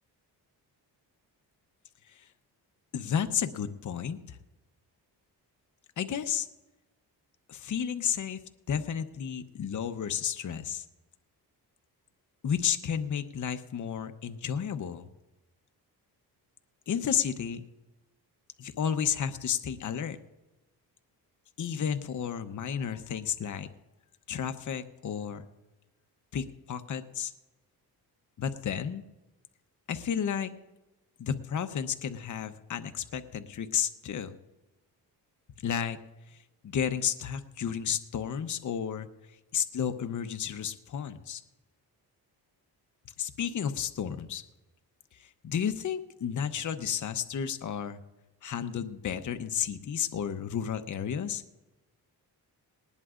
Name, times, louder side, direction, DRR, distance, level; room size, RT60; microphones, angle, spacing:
voice 1, 2.9-4.4 6.0-6.5 7.5-8.4 8.7-10.8 12.4-15.1 16.9-17.6 18.6-20.2 21.6-23.7 24.3-25.4 26.3-27.3 28.4-29.0 29.9-30.5 31.2-34.3 35.6-36.0 36.3-36.4 36.6-39.1 39.5-41.4 43.2-44.4 45.2-48.0 48.4-51.4, left 8 dB, 50° left, 9 dB, 0.9 m, -32 dB
19.0 x 19.0 x 2.5 m, 1.0 s
cardioid pair, 110°, 39 cm